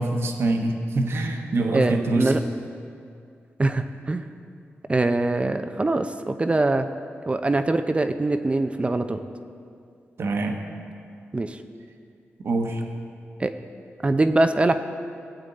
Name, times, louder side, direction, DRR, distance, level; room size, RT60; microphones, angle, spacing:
voice 1, 0.0-2.3 10.2-10.6 12.4-12.8, right 2 dB, 65° right, 3 dB, 1.1 m, -24 dB
voice 2, 1.7-2.4 3.6-4.2 4.9-6.9 7.3-9.2 11.3-11.6 13.4-13.5 14.0-14.7, right 2 dB, 25° right, 8 dB, 0.6 m, -23 dB
16.5 x 8.1 x 4.0 m, 2.4 s
cardioid pair, 80°, 5 cm